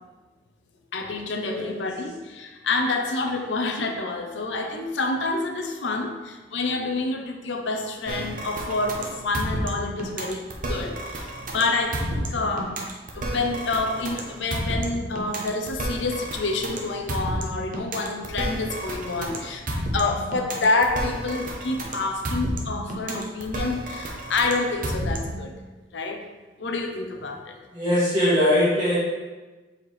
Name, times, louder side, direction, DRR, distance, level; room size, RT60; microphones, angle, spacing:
voice 1, 0.9-12.7 13.1-25.5 25.9-26.2 26.6-27.6, left 3 dB, 80° left, 4 dB, 0.7 m, -28 dB
sound 1, 8.1-25.5, right 1 dB, 45° right, 0.9 m, -31 dB
voice 2, 27.7-28.9, left 1 dB, 20° right, -13 dB, 1.8 m, -21 dB
7.5 x 4.3 x 3.3 m, 1.2 s
head